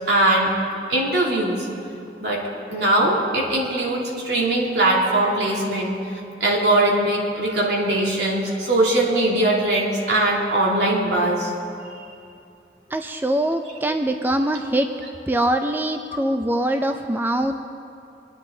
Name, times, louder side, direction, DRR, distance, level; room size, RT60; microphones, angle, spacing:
voice 1, 0.1-0.5 0.9-1.7 2.2-5.9 6.4-11.5, right 1 dB, 75° right, -3 dB, 2.8 m, -21 dB
voice 2, 12.9-14.9 15.3-17.6, right 1 dB, 10° right, 6 dB, 0.4 m, -23 dB
25.0 x 10.5 x 3.8 m, 2.6 s
head